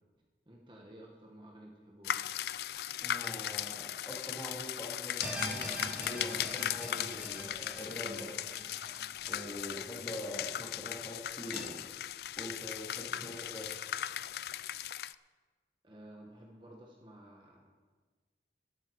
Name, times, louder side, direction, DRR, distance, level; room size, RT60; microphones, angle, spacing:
voice 1, 0.4-2.3 13.1-13.3 15.8-17.7, right 1 dB, 25° right, -1 dB, 1.5 m, -53 dB
sound 1, 2.0-15.1, left 11 dB, 60° left, 0.3 m, -38 dB
voice 2, 3.0-8.5 9.3-11.8 12.4-13.8, left 1 dB, 15° left, -2 dB, 2.6 m, -44 dB
sound 2, 5.2-10.4 10.8-10.9 11.5-11.6, equal, 5° right, 2.5 m, -44 dB
12.5 x 12.5 x 4.9 m, 1.4 s
head